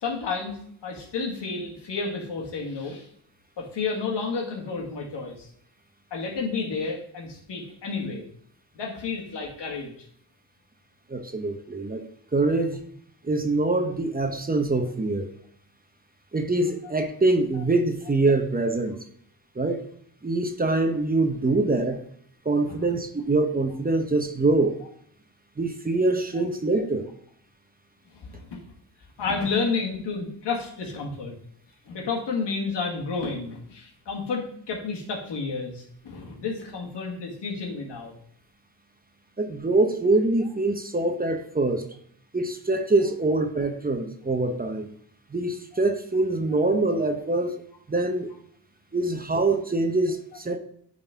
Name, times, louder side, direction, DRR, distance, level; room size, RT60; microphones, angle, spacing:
voice 1, 0.0-3.1 3.6-5.5 6.1-8.2 8.7-9.9 22.7-22.8 28.2-28.7 29.2-31.3 31.9-38.1, left 4 dB, 85° left, -1 dB, 1.9 m, -31 dB
voice 2, 11.1-12.1 12.3-12.8 13.2-15.3 16.3-19.0 19.6-19.9 20.2-22.0 22.4-24.8 25.6-27.1 39.4-41.9 42.3-44.9 45.3-47.6 47.9-48.3 48.9-50.6, right 2 dB, 20° right, 6 dB, 0.9 m, -24 dB
9.0 x 4.0 x 3.5 m, 0.65 s
cardioid pair, 85°, 41 cm